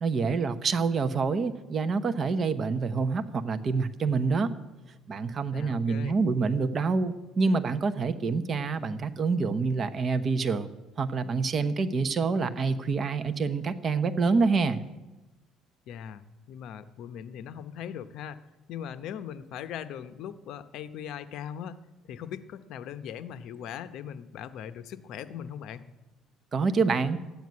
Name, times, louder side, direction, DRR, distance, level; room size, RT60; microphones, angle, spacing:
voice 1, 0.0-4.5 5.1-10.7 11.0-14.8 26.5-27.2, right 4 dB, 35° right, 10 dB, 0.9 m, -27 dB
voice 2, 5.5-6.2 15.9-18.4 18.7-25.8, left 9 dB, 65° left, 12 dB, 0.8 m, -40 dB
13.5 x 9.2 x 9.5 m, 1.1 s
cardioid pair, 135°, 0 cm